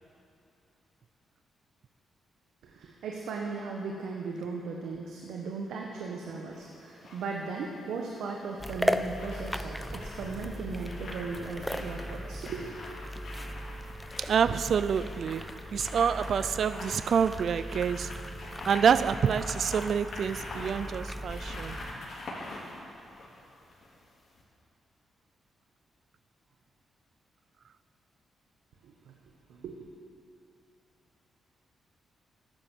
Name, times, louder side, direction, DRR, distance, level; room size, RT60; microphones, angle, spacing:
voice 1, 2.6-12.7 28.8-29.1 29.5-29.8, right 4 dB, 80° right, 1.2 m, -37 dB
sound 1, 6.5-7.3 8.5-24.0 24.3-24.4, left 2 dB, 60° left, 3.9 m, -44 dB
sound 2, 8.6-21.9, equal, 5° left, 0.8 m, -37 dB
voice 2, 14.2-18.1 18.7-21.8, right 7 dB, 65° right, 0.4 m, -27 dB
14.0 x 10.5 x 7.5 m
supercardioid pair, 60°, 0 cm